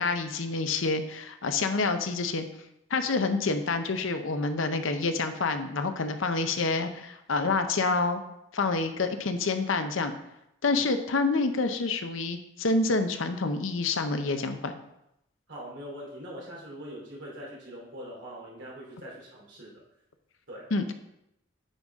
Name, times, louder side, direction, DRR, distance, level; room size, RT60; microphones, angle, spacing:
voice 1, 0.0-2.5 2.9-8.2 8.5-10.2 10.6-14.7 20.7-20.9, left 3 dB, 80° left, 8 dB, 0.7 m, -27 dB
voice 2, 15.5-19.7 20.5-20.7, equal, 60° right, -4 dB, 2.8 m, -42 dB
9.2 x 5.4 x 3.6 m, 0.82 s
head